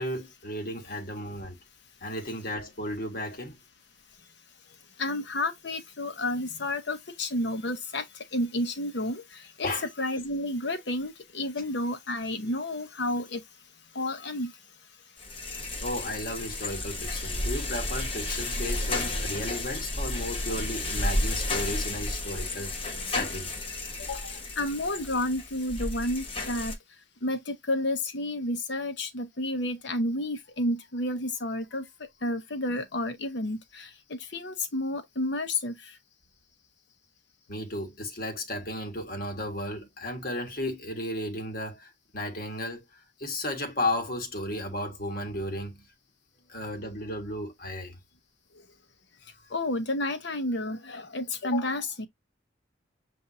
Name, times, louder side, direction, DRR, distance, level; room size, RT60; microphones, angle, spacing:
voice 1, 0.0-1.6 2.0-3.6 9.6-9.9 15.8-23.5 37.5-45.9 46.5-48.0, left 1 dB, 50° left, 1.4 m, -34 dB
voice 2, 5.0-8.0 8.3-9.2 9.6-9.7 10.0-13.4 14.0-14.5 24.1-26.7 27.2-31.8 32.2-35.7 49.5-52.1, left 1 dB, 70° left, 0.9 m, -30 dB
sound 1, 15.2-26.8, left 2 dB, 30° left, 0.8 m, -32 dB
7.2 x 2.6 x 2.7 m
head